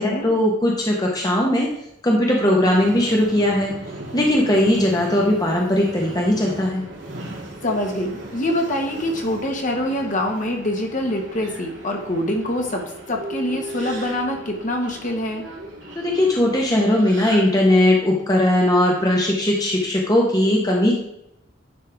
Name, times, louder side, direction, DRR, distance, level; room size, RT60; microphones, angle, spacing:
voice 1, 0.0-1.7 2.0-3.7 4.1-6.8 15.9-21.0, left 1 dB, 20° left, -1 dB, 1.0 m, -19 dB
Subway metro underground, 2.6-17.9, right 1 dB, 75° right, 2.1 m, -37 dB
voice 2, 7.6-12.8 13.1-15.4, left 1 dB, 45° left, 2 dB, 1.4 m, -25 dB
10.5 x 5.5 x 3.4 m, 0.80 s
head